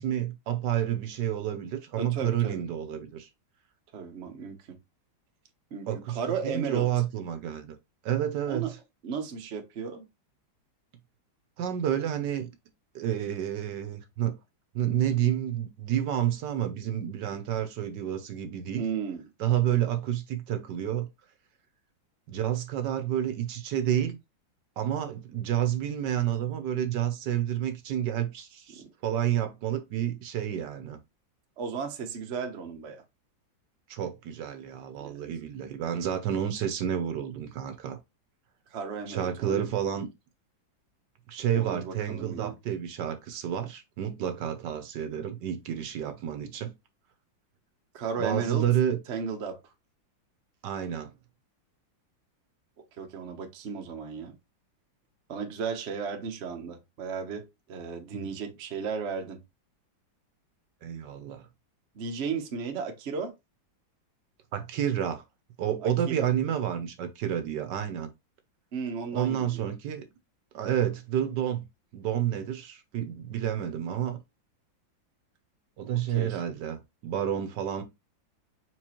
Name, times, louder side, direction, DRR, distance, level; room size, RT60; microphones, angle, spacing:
voice 1, 0.0-3.3 5.9-6.2 6.4-7.8 8.0-8.7 11.6-12.5 12.9-14.3 14.7-18.8 19.4-21.1 22.3-24.2 24.8-31.0 33.9-38.0 39.1-40.1 41.3-46.7 48.2-49.0 50.6-51.1 58.1-58.3 60.8-61.5 64.5-65.2 65.6-68.1 69.1-70.1 70.5-71.6 71.9-74.2 75.8-77.8, right 10 dB, 70° right, 1.2 m, -29 dB
voice 2, 2.0-2.6 3.9-4.8 5.7-6.9 8.5-8.7 9.0-10.1 18.8-19.2 31.6-33.0 35.0-35.2 38.7-39.7 41.5-42.5 47.9-48.7 49.1-49.6 53.0-54.3 55.3-59.4 61.9-63.3 65.8-66.3 68.7-69.7 75.9-76.4, right 6 dB, 50° right, 0.8 m, -35 dB
4.5 x 4.0 x 2.9 m
omnidirectional pair, 2.1 m